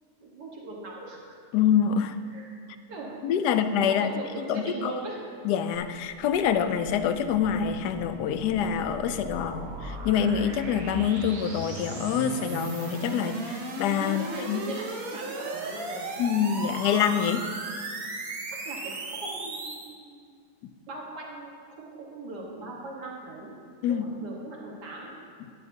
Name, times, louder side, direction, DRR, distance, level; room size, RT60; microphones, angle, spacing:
voice 1, 0.2-1.4 2.3-2.5 2.9-3.2 3.9-5.2 14.0-16.1 17.7-17.9 18.5-20.4 20.9-23.5 23.9-25.2, right 2 dB, 85° right, -3 dB, 1.9 m, -40 dB
voice 2, 1.5-2.2 3.2-4.1 4.5-4.9 5.4-14.7 16.2-17.5 23.8-24.0, left 8 dB, 85° left, 9 dB, 1.1 m, -26 dB
sound 1, 5.8-19.9, right 2 dB, 65° right, 1.4 m, -37 dB
13.0 x 10.0 x 2.7 m, 2.1 s
omnidirectional pair, 1.7 m